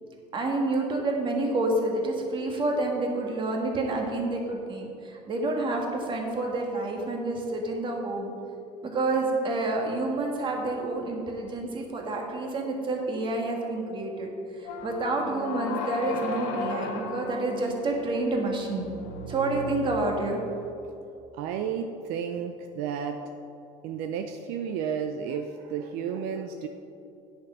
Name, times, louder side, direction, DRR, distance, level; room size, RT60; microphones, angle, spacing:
voice 1, 0.3-8.3 8.8-14.3 14.6-18.9 19.3-20.4, right 2 dB, 30° right, 1 dB, 1.7 m, -29 dB
sound 1, 14.6-20.7, left 3 dB, 65° left, 1.2 m, -35 dB
voice 2, 21.3-23.3 23.8-26.7, right 7 dB, 70° right, 6 dB, 0.6 m, -32 dB
9.6 x 6.6 x 5.6 m, 2.7 s
cardioid pair, 135°, 17 cm